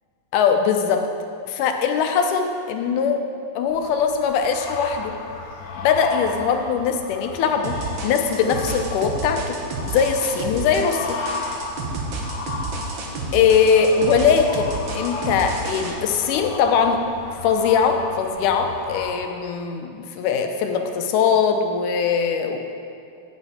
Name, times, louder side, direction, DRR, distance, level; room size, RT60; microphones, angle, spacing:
voice 1, 0.3-1.0 1.5-3.2 3.6-5.1 5.8-7.8 8.0-9.6 9.9-11.2 13.3-17.0 17.4-22.6, left 6 dB, 90° left, 5 dB, 2.2 m, -21 dB
sound 1, 3.7-19.2, left 4 dB, 70° left, 1.8 m, -34 dB
sound 2, 7.6-15.9, right 3 dB, 75° right, 1.1 m, -30 dB
9.0 x 8.3 x 4.1 m, 2.5 s
omnidirectional pair, 3.6 m